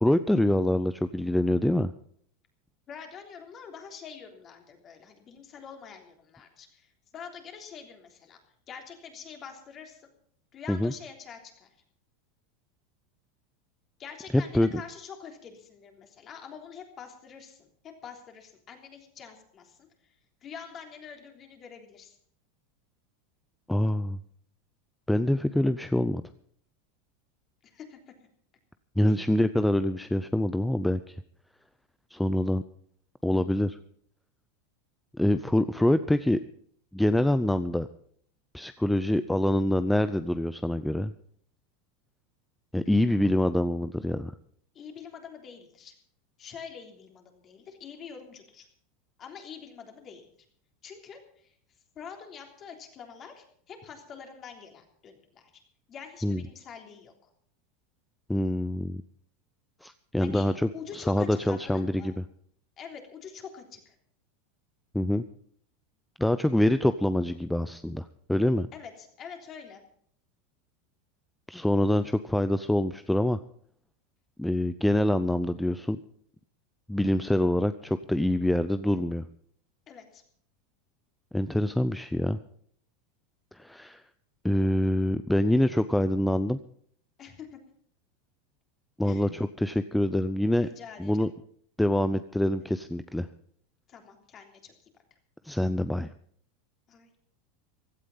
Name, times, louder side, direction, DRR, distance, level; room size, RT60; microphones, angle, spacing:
voice 1, 0.0-1.9 10.7-10.9 14.3-14.7 23.7-24.2 25.1-26.2 29.0-31.2 32.1-32.6 33.2-33.8 35.1-36.4 36.9-37.9 38.5-41.1 42.7-44.3 56.2-56.4 58.3-59.0 59.8-60.7 60.9-62.2 64.9-65.2 66.2-68.7 71.5-73.4 74.4-76.0 76.9-79.2 81.3-82.4 83.5-84.0 84.4-86.6 89.0-90.7 91.0-91.3 91.8-93.3 95.4-96.1, left 1 dB, 5° left, 12 dB, 0.5 m, -25 dB
voice 2, 2.9-8.4 8.7-10.1 10.5-11.7 14.0-19.8 20.4-22.1 27.6-28.0 29.0-29.2 44.7-45.9 46.4-48.7 49.2-50.2 50.8-51.2 51.9-55.5 55.9-57.1 60.2-60.5 60.7-62.1 62.8-63.9 68.7-69.8 79.9-80.2 87.2-87.6 89.0-89.3 90.6-91.3 93.9-94.7 96.9-97.1, left 7 dB, 35° left, 4 dB, 3.4 m, -45 dB
16.0 x 12.5 x 5.5 m, 0.62 s
supercardioid pair, 130°, 0 cm